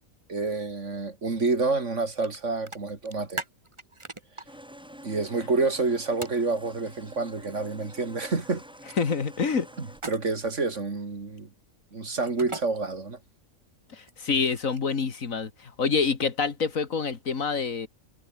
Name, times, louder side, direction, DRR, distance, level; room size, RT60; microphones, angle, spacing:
voice 1, 0.3-3.4 5.0-8.6 9.8-11.5 11.9-13.2, right 3 dB, 55° right, 3.1 m, -28 dB
sound 1, 2.2-2.4 2.7-4.5 6.2-6.4 9.9-10.5 12.2-12.6 14.0-14.9, right 2 dB, 20° right, 1.7 m, -38 dB
sound 2, 4.5-10.0, equal, 5° right, 4.6 m, -48 dB
voice 2, 9.0-9.7 13.9-17.9, left 5 dB, 65° left, 2.2 m, -27 dB
omnidirectional pair, 1.5 m